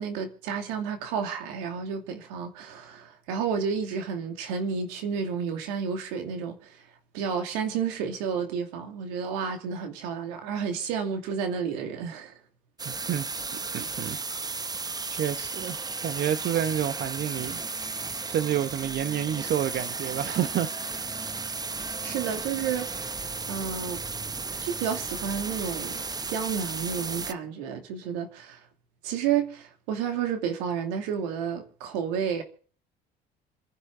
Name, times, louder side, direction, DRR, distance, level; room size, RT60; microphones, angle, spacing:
voice 1, 0.0-6.7 7.1-12.3 22.0-22.9 23.5-24.0 24.6-28.6 29.0-32.4, right 7 dB, 80° right, 2.6 m, -31 dB
sound 1, 12.8-27.3, right 4 dB, 20° right, 0.8 m, -34 dB
voice 2, 12.8-13.3 13.7-14.2 15.1-21.0, right 10 dB, 55° right, 1.1 m, -29 dB
26.5 x 11.0 x 3.8 m
hypercardioid pair, 65°, 21 cm